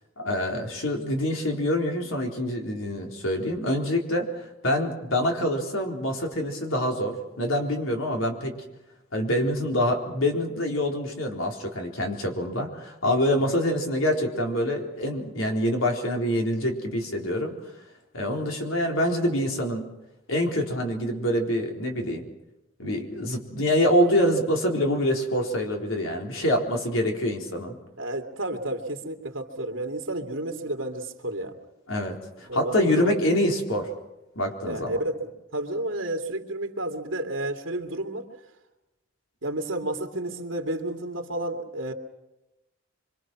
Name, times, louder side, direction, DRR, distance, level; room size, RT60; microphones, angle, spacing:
voice 1, 0.2-8.5 9.1-17.5 18.1-19.9 20.3-22.3 22.8-27.8 31.9-33.9 34.4-35.0, equal, 90° left, 4.1 m, -26 dB
voice 2, 18.2-18.6 26.4-26.5 28.0-31.6 32.5-33.1 34.6-38.3 39.4-41.9, right 1 dB, 75° right, 2.7 m, -31 dB
25.0 x 25.0 x 6.2 m
head